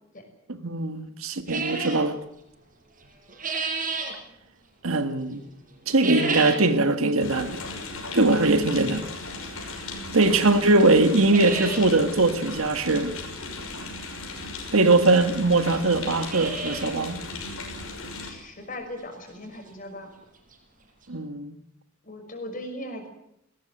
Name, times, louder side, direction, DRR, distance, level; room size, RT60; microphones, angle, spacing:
voice 1, 0.5-2.2 4.8-5.4 5.9-7.6 8.1-9.1 10.1-13.2 14.7-17.2 21.1-21.6, right 2 dB, 75° right, 1.7 m, -21 dB
sound 1, 1.5-2.1 3.0-4.2 5.9-6.7 7.1-7.2 8.0-8.1 9.8-9.9 10.3-10.4 10.7-10.8 11.1-11.9 12.2-12.3 12.5-12.6 14.2-14.3 15.1-15.2 15.3-15.4 16.0-17.0 17.3-17.4 17.9-18.0 18.4-18.5 20.2-20.3 20.5-20.6 21.0-21.1, right 4 dB, 40° right, 5.4 m, -31 dB
sound 2, 7.2-18.3, left 3 dB, 85° left, 6.1 m, -37 dB
voice 2, 18.2-20.1 22.0-23.1, left 1 dB, 40° left, 6.0 m, -38 dB
19.5 x 18.0 x 9.4 m
head